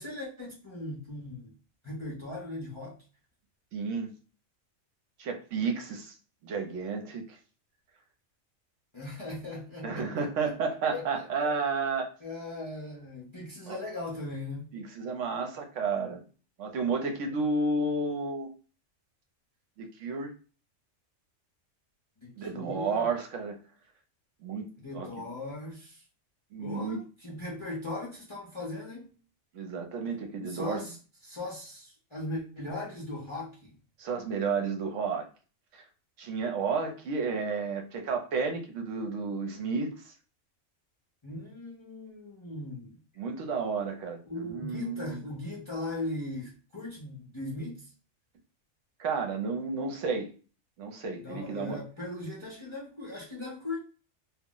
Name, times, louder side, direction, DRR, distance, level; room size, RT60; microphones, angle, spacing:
voice 1, 0.0-1.5 1.8-3.0 8.9-10.5 10.9-11.5 12.2-14.7 22.2-23.0 24.8-26.0 26.6-29.1 30.5-31.0 31.2-33.8 41.2-43.0 44.3-47.9 51.2-53.8, left 2 dB, 35° left, 0.5 m, -39 dB
voice 2, 3.7-4.1 5.2-6.1 6.4-7.4 9.8-12.1 13.7-13.8 14.7-16.2 16.6-18.5 19.8-20.3 22.4-23.6 24.4-24.7 24.9-25.1 26.5-27.0 29.5-30.8 34.0-35.2 35.7-35.8 36.2-40.1 43.2-45.2 49.0-50.3 50.8-51.8, right 4 dB, 75° right, 0.9 m, -32 dB
2.3 x 2.1 x 3.7 m
omnidirectional pair, 1.3 m